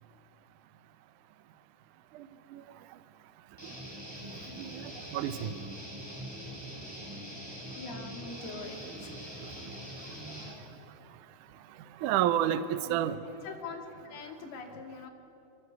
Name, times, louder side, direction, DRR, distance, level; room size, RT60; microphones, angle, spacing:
voice 1, 2.1-2.6 4.5-5.5 8.5-8.6 10.5-10.6 12.0-13.2, right 11 dB, 75° right, 11 dB, 1.9 m, -30 dB
Guitar, 3.6-10.4, equal, 5° right, 7.2 m, -43 dB
voice 2, 7.8-9.1 13.3-15.1, left 5 dB, 70° left, 3 dB, 4.2 m, -43 dB
28.0 x 24.0 x 8.2 m, 2.8 s
omnidirectional pair, 4.6 m